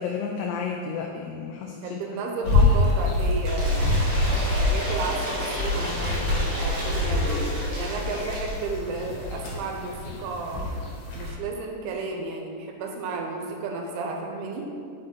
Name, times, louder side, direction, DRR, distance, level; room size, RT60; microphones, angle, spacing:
voice 1, 0.0-2.0 2.5-2.6, left 6 dB, 85° left, 1 dB, 2.6 m, -32 dB
voice 2, 1.8-7.4 7.8-10.7 11.1-14.7, right 3 dB, 80° right, 2 dB, 2.6 m, -33 dB
sound 1, 2.4-11.3, left 2 dB, 70° left, 2.8 m, -25 dB
Cheering / Applause / Crowd, 3.4-8.6, equal, 65° right, 1.3 m, -32 dB
6.4 x 5.8 x 4.3 m, 2.3 s
omnidirectional pair, 4.8 m